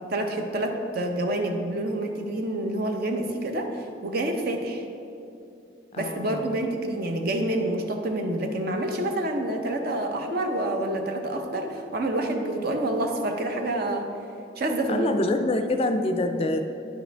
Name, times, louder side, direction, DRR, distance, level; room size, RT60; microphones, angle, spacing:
voice 1, 0.1-4.8 6.0-14.1 14.6-15.1, right 1 dB, 55° right, 4 dB, 0.7 m, -28 dB
voice 2, 5.9-6.6 14.9-16.7, left 2 dB, 30° left, 6 dB, 0.3 m, -26 dB
10.0 x 5.0 x 3.4 m, 2.7 s
head